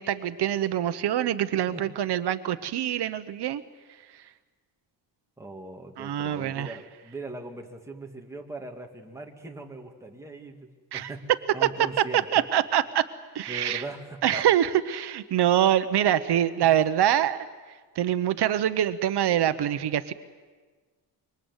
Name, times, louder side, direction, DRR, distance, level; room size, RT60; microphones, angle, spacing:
voice 1, 0.0-3.6 6.0-6.7 10.9-11.1 12.3-13.0 13.3-13.8 14.2-17.4 18.0-20.1, right 11 dB, 80° right, 11 dB, 1.0 m, -24 dB
voice 2, 5.4-12.4 13.5-14.5 16.6-16.8, right 2 dB, 5° right, 1 dB, 2.2 m, -40 dB
26.0 x 24.0 x 8.1 m, 1.4 s
wide cardioid pair, 150°, 40 cm